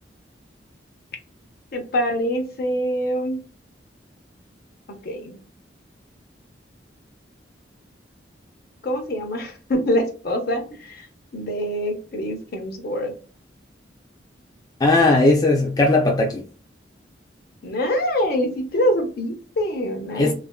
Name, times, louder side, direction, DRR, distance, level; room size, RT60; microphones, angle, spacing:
voice 1, 1.7-3.4 5.0-5.4 8.8-11.1 11.3-13.1 17.6-20.3, equal, 55° left, 0.6 m, -25 dB
voice 2, 14.8-16.4 20.2-20.3, left 2 dB, 20° left, 0.4 m, -17 dB
2.5 x 2.2 x 2.3 m
head